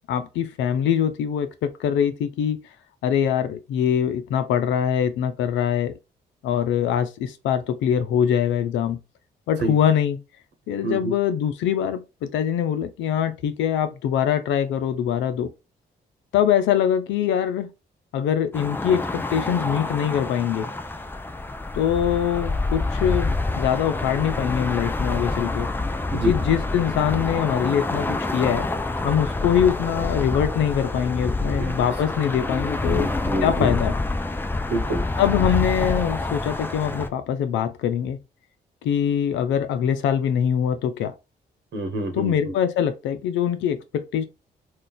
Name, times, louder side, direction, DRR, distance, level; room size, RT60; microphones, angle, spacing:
voice 1, 0.1-2.6 3.0-5.9 6.4-9.0 9.5-10.2 10.7-15.5 16.3-17.7 18.1-20.7 21.7-25.7 26.1-28.7 29.0-33.1 33.4-33.9 35.2-38.2 38.8-41.1 42.1-44.2, left 9 dB, 85° left, 0.5 m, -23 dB
sound 1, 18.5-37.1, left 2 dB, 10° left, 0.4 m, -27 dB
voice 2, 32.9-33.8 34.7-35.0 41.7-42.5, right 2 dB, 65° right, 1.0 m, -27 dB
2.4 x 2.3 x 3.8 m
supercardioid pair, 60°, 19 cm